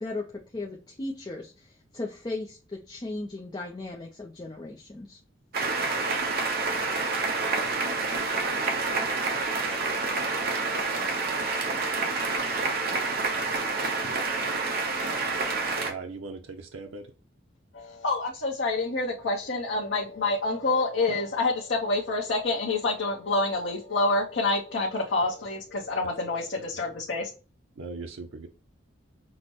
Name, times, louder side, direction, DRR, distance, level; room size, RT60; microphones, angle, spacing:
voice 1, 0.0-5.2, left 2 dB, 20° left, 0 dB, 0.4 m, -37 dB
sound 1, 5.5-15.9, right 3 dB, 50° right, 0.8 m, -28 dB
voice 2, 15.8-17.1 27.8-28.5, right 4 dB, 90° right, 4 dB, 0.5 m, -39 dB
voice 3, 17.7-27.3, left 2 dB, 65° left, -3 dB, 0.8 m, -27 dB
5.8 x 2.1 x 2.9 m, 0.34 s
head